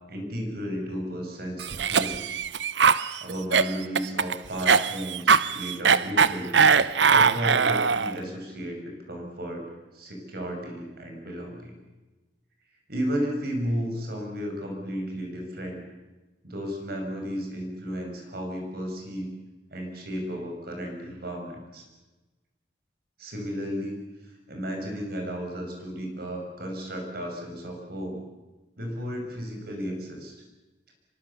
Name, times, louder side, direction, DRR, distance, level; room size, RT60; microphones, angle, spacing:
voice 1, 0.1-2.2 3.2-6.5 7.1-8.8 9.1-9.6 9.9-11.8 12.9-15.8 16.4-19.3 19.7-21.8 23.2-24.0 24.3-28.2 28.8-30.4, equal, 60° right, 3 dB, 6.3 m, -33 dB
Cough, 1.6-8.2, right 6 dB, 80° right, 0.8 m, -21 dB
25.5 x 23.5 x 7.1 m, 1.1 s
head